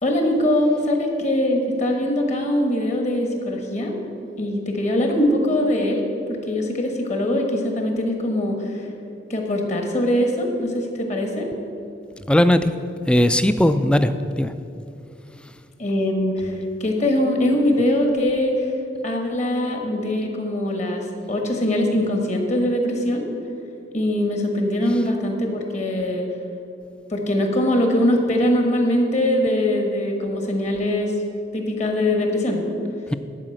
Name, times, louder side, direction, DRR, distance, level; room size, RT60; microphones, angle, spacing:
voice 1, 0.0-3.9 4.4-8.9 9.3-11.5 15.8-18.7 19.0-23.3 23.9-26.3 27.1-31.2 31.5-32.6, left 1 dB, 40° left, 3 dB, 1.4 m, -22 dB
voice 2, 12.3-12.7 13.1-14.5 33.1-33.2, left 1 dB, 5° left, 11 dB, 0.3 m, -18 dB
11.0 x 4.9 x 7.8 m, 2.6 s
head